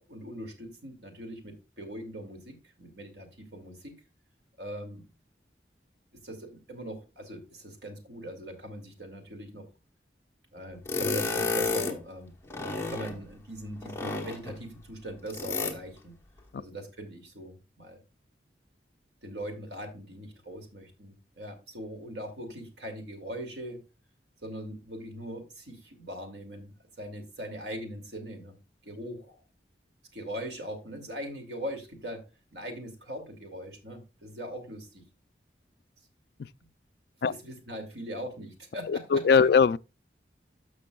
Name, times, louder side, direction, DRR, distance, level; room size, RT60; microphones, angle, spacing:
voice 1, 0.1-4.0 4.6-5.1 6.2-9.7 10.5-12.3 12.9-16.2 16.6-18.0 19.2-23.8 24.4-28.6 28.8-29.4 30.1-32.2 32.5-35.0 37.2-39.5, equal, 75° right, 2.4 m, -41 dB
sound 1, 10.9-12.0 12.5-13.2 13.8-14.6 15.3-15.8, left 3 dB, 15° left, 1.1 m, -31 dB
voice 2, 38.9-39.8, left 5 dB, 60° left, 0.3 m, -21 dB
13.0 x 6.0 x 2.3 m
head